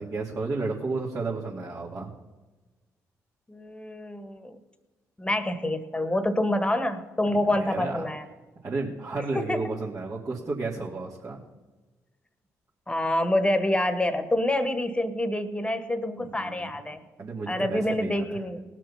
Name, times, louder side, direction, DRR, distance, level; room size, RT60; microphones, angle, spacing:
voice 1, 0.0-2.1 7.5-8.0 8.6-11.4 16.2-16.7 17.2-18.4, right 3 dB, 45° right, -4 dB, 2.4 m, -32 dB
voice 2, 3.5-4.6 5.2-8.2 9.3-9.7 12.9-17.0 17.5-18.6, left 1 dB, 15° left, 11 dB, 1.6 m, -27 dB
18.5 x 6.2 x 5.7 m, 1.2 s
hypercardioid pair, 50°, 7 cm